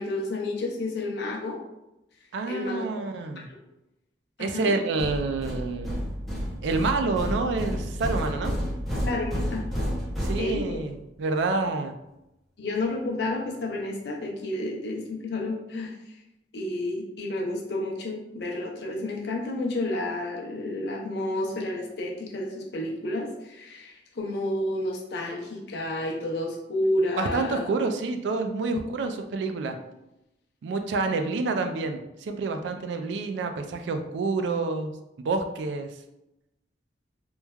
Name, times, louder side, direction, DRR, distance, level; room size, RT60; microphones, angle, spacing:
voice 1, 0.0-1.6 2.5-2.9 3.5-3.6 4.4-4.7 9.1-9.7 10.4-10.8 12.6-16.2 16.5-27.7, left 2 dB, 70° left, 0 dB, 0.5 m, -30 dB
voice 2, 2.3-3.5 4.4-6.0 6.6-8.6 10.2-11.9 27.2-29.8 30.6-35.9, right 3 dB, 85° right, 6 dB, 0.3 m, -28 dB
sound 1, 5.0-11.0, equal, ahead, 0.5 m, -31 dB
3.1 x 2.2 x 2.2 m, 0.90 s
head